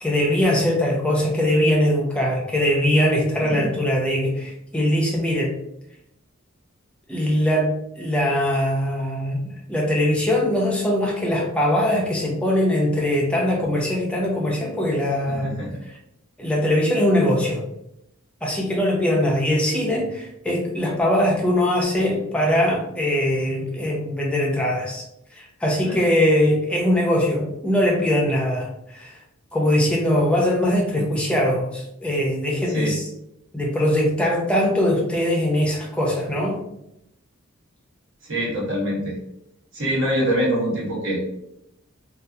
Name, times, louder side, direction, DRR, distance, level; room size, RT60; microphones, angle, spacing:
voice 1, 0.0-5.6 7.1-7.7 8.0-9.4 9.7-15.6 16.4-17.6 18.4-25.0 25.3-29.2 29.5-33.1 33.5-36.6, left 1 dB, 5° left, -2 dB, 0.5 m, -21 dB
voice 2, 15.3-15.8 25.8-26.0 32.7-33.0 38.3-39.2 39.7-41.2, right 1 dB, 65° right, -6 dB, 1.2 m, -25 dB
2.7 x 2.4 x 2.3 m, 0.79 s
head